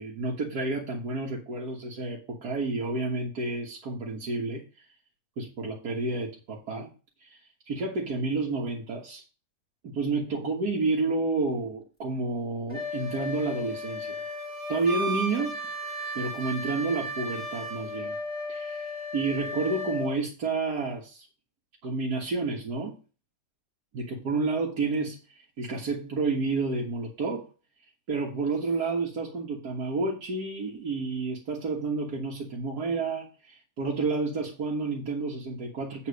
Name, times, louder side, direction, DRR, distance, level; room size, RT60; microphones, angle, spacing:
voice 1, 0.0-4.6 5.4-6.9 7.2-7.4 7.7-9.2 9.8-14.2 14.7-15.6 16.2-18.2 18.5-21.3 21.8-23.0 23.9-27.5 28.1-36.1, right 3 dB, 85° right, -3 dB, 2.0 m, -30 dB
Wind instrument woodwind instrument, 12.7-20.1, left 1 dB, 10° left, 2.3 m, -34 dB
8.9 x 4.1 x 6.3 m, 0.34 s
omnidirectional pair, 1.6 m